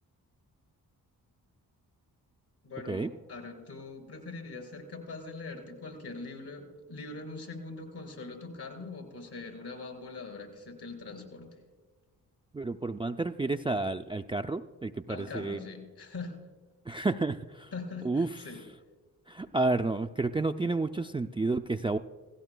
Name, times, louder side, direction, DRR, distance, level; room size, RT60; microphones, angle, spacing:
voice 1, 2.6-11.6 15.1-16.3 17.7-18.7, left 3 dB, 70° left, 3 dB, 3.8 m, -42 dB
voice 2, 12.5-15.6 16.9-17.7 18.0-18.3 19.3-22.0, right 3 dB, 15° right, 9 dB, 0.3 m, -30 dB
17.0 x 16.5 x 2.2 m, 1.4 s
cardioid pair, 50°, 39 cm